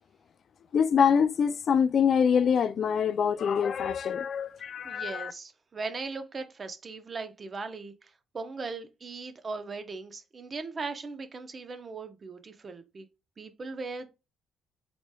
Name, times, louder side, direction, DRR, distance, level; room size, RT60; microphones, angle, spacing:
voice 1, 0.7-5.3, left 7 dB, 55° left, 0.3 m, -25 dB
voice 2, 4.8-13.1 13.4-14.1, right 4 dB, 40° right, 0.7 m, -39 dB
4.1 x 3.1 x 2.2 m
supercardioid pair, 70°, 0 cm